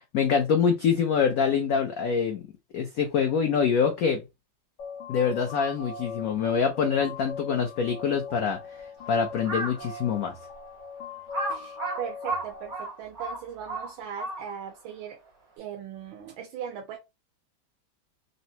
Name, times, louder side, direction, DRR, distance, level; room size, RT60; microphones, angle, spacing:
voice 1, 0.1-2.4 2.7-4.2 5.1-8.6 9.1-10.3, left 6 dB, 80° left, 0.7 m, -25 dB
sound 1, 4.8-12.8, left 5 dB, 65° left, 1.4 m, -40 dB
Crow, 9.3-9.8 10.4-10.5 11.3-14.7, right 2 dB, 50° right, 1.7 m, -33 dB
voice 2, 11.5-15.2 15.6-17.0, right 8 dB, 85° right, 1.4 m, -39 dB
3.9 x 2.1 x 2.7 m
omnidirectional pair, 2.1 m